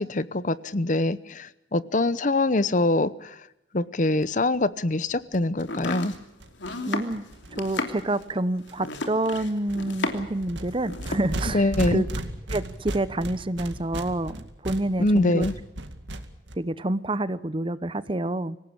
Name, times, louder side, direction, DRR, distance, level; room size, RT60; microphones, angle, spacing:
voice 1, 0.0-3.3 3.7-6.1 11.5-12.0 15.0-15.5, left 2 dB, 45° left, 16 dB, 0.8 m, -24 dB
sound 1, 4.2-4.3 4.5-4.6 4.8-4.9 5.1-8.3 8.7-9.0 9.3-16.5, right 1 dB, 80° right, 2.2 m, -36 dB
Domestic sounds home sounds, 5.6-10.4 10.7-11.3, left 3 dB, 80° left, 3.0 m, -33 dB
voice 2, 6.9-7.2 7.6-12.1 12.5-15.5 16.6-18.6, right 1 dB, 30° right, 15 dB, 0.8 m, -28 dB
26.0 x 17.5 x 8.6 m, 0.86 s
head